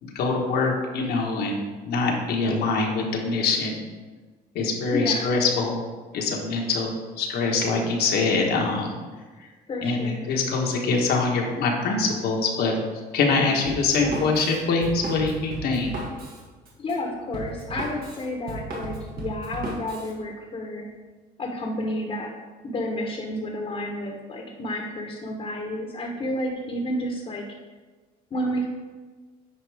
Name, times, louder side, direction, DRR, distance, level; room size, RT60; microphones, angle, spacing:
voice 1, 0.0-1.6 1.8-3.8 4.5-5.8 6.1-8.9 9.8-12.8 13.1-15.9, left 3 dB, 70° left, 1 dB, 1.3 m, -24 dB
voice 2, 4.9-5.3 9.7-10.2 13.9-14.3 16.8-20.8 21.4-22.3 22.6-27.4 28.3-28.7, left 1 dB, 35° left, 0 dB, 1.1 m, -30 dB
Drum kit, 13.7-20.1, right 2 dB, 60° right, 1.6 m, -35 dB
9.7 x 4.2 x 3.5 m, 1.4 s
cardioid pair, 110°, 17 cm